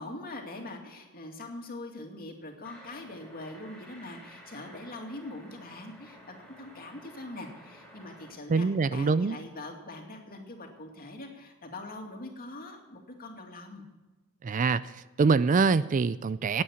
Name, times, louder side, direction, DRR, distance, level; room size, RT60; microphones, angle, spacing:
voice 1, 0.0-13.8, left 2 dB, 40° left, 2 dB, 2.4 m, -43 dB
sound 1, 2.6-8.3, equal, ahead, 4.3 m, -52 dB
voice 2, 8.5-9.4 14.4-16.6, right 4 dB, 35° right, 16 dB, 0.4 m, -25 dB
17.5 x 8.6 x 7.1 m, 1.1 s
head